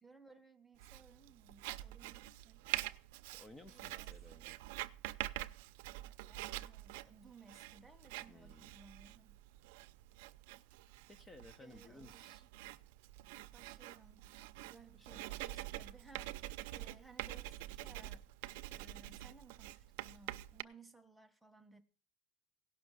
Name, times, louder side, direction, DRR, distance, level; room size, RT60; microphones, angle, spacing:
voice 1, 0.0-2.6 3.7-4.4 6.2-9.4 11.6-12.5 13.5-14.3 14.6-18.3 18.7-21.8, right 4 dB, 5° right, 1.2 m, -61 dB
Writing, 0.8-20.6, right 17 dB, 80° right, 0.6 m, -46 dB
voice 2, 3.3-4.5 8.3-8.7 11.1-12.4 15.0-15.2, left 2 dB, 20° left, 0.8 m, -58 dB
17.0 x 6.0 x 6.6 m
supercardioid pair, 135°, 0 cm